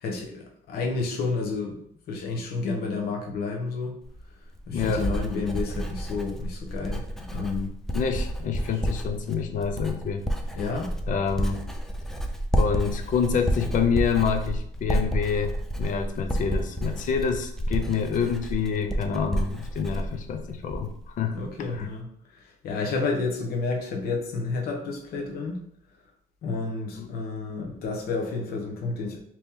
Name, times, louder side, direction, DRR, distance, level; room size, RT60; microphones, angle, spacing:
voice 1, 0.0-4.0 4.3-4.4 4.7-7.0 7.3-7.8 8.7-8.8 10.5-10.9 21.3-25.6 26.4-29.2, left 3 dB, 65° left, 1 dB, 0.9 m, -30 dB
Writing, 4.0-21.1 21.4-21.8, right 1 dB, ahead, 0.4 m, -30 dB
voice 2, 4.7-5.1 7.9-10.2 11.1-11.6 12.6-21.4 21.7-21.9 27.0-27.1, left 6 dB, 50° left, 7 dB, 0.5 m, -27 dB
2.9 x 2.9 x 3.5 m, 0.66 s
cardioid pair, 110°, 17 cm